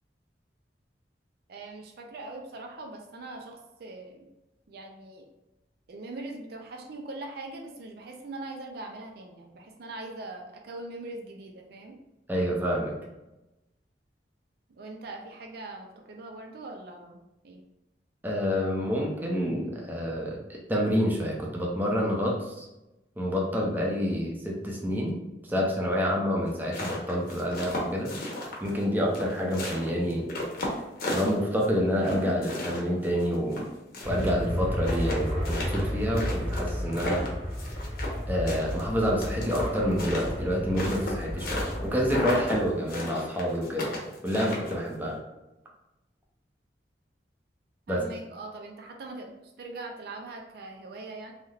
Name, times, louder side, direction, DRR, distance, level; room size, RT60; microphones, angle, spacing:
voice 1, 1.5-4.3 4.7-5.3 5.9-12.0 14.8-17.2 17.4-17.6 47.9-51.3, right 2 dB, 60° right, 3 dB, 0.4 m, -41 dB
voice 2, 12.3-12.9 18.2-22.7 23.2-25.2 25.5-28.1 28.6-30.2 31.1-33.6 34.1-37.2 38.3-45.2 47.9-48.0, equal, 10° right, -2 dB, 0.5 m, -28 dB
sound 1, 26.5-28.8 29.1-31.7 32.0-34.3 34.6-34.7 34.8-38.2 38.5-41.8 42.1-42.6 42.9-44.9, left 1 dB, 55° left, 0.8 m, -34 dB
sound 2, 34.0-42.8, equal, 35° right, 0.9 m, -33 dB
3.3 x 2.7 x 2.4 m, 0.97 s
head